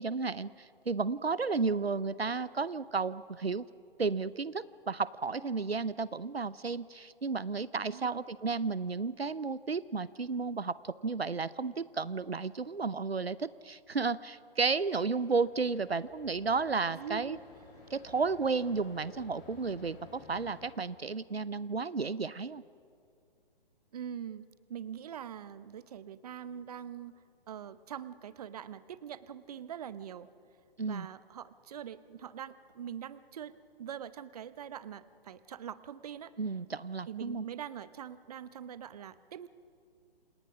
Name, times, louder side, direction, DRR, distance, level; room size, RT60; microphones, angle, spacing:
voice 1, 0.0-3.6 4.0-17.4 17.9-22.6 30.8-31.1 36.4-37.5, right 4 dB, 85° right, 18 dB, 0.7 m, -33 dB
voice 2, 7.9-8.3 16.9-17.4 23.9-27.2 27.5-30.3 30.9-36.3 37.1-39.5, right 9 dB, 40° right, 16 dB, 0.9 m, -43 dB
sound 1, 14.5-20.7, left 5 dB, 25° left, 7.3 m, -55 dB
29.5 x 27.5 x 6.1 m, 2.4 s
figure-of-eight pair, 130°, 30 cm